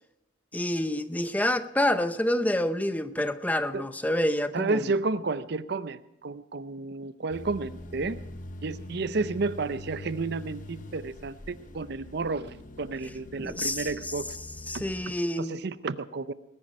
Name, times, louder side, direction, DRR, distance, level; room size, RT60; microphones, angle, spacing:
voice 1, 0.5-4.9 13.4-13.9 14.7-15.6, left 1 dB, 10° left, 11 dB, 0.6 m, -27 dB
voice 2, 4.5-8.2 8.6-14.4 14.7-14.8 15.4-16.3, right 3 dB, 60° right, 14 dB, 0.6 m, -31 dB
sound 1, 7.3-15.1, left 1 dB, 45° left, 0.8 m, -44 dB
20.0 x 10.5 x 5.2 m, 0.85 s
head